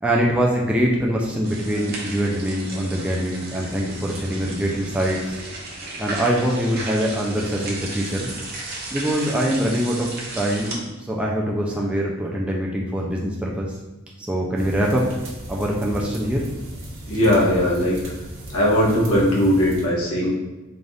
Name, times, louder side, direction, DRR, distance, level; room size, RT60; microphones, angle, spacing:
voice 1, 0.0-5.4 6.0-8.3 8.9-13.7 14.3-15.2 15.5-16.4, equal, 5° right, -3 dB, 0.3 m, -23 dB
sound 1, 1.4-10.8, right 2 dB, 45° right, 0.7 m, -35 dB
sound 2, 14.6-19.9, right 1 dB, 65° right, 0.9 m, -37 dB
voice 2, 17.1-18.0 18.5-20.4, equal, 90° left, -5 dB, 1.1 m, -19 dB
3.3 x 2.4 x 3.8 m, 1.1 s
head